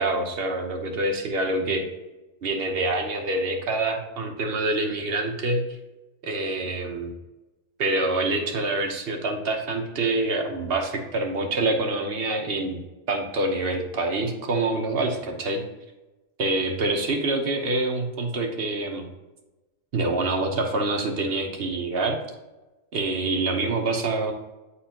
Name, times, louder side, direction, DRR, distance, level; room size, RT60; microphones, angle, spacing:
voice 1, 0.0-1.8 2.4-5.6 6.2-7.1 7.8-12.8 13.1-15.6 16.4-19.1 19.9-22.2 22.9-24.3, right 2 dB, 55° right, 3 dB, 1.0 m, -26 dB
8.6 x 4.2 x 2.8 m, 1.1 s
omnidirectional pair, 1.3 m